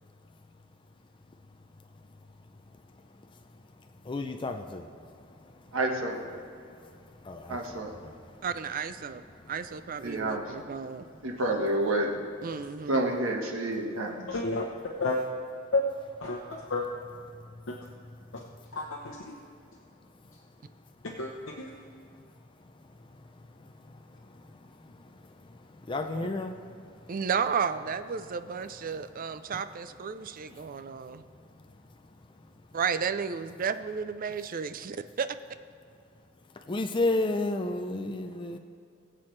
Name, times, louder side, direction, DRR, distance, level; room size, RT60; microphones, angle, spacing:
voice 1, 4.0-4.8 7.2-7.8 25.9-26.5 36.7-38.6, left 2 dB, 25° left, 5 dB, 0.5 m, -30 dB
voice 2, 5.7-6.2 7.5-7.9 10.0-10.4 11.2-12.1 12.9-14.3, right 1 dB, 80° right, 1 dB, 1.5 m, -29 dB
voice 3, 8.4-9.2 9.5-11.1 12.4-13.0 26.0-26.3 27.1-31.2 32.7-35.4, right 6 dB, 45° right, 11 dB, 0.5 m, -33 dB
voice 4, 14.3-14.7 15.0-15.2 15.7-15.8 16.2-16.4 16.7-16.8 17.7-17.8 18.7-19.2 21.2-21.7, left 3 dB, 75° left, -1 dB, 0.9 m, -30 dB
21.0 x 7.7 x 3.3 m, 2.4 s
head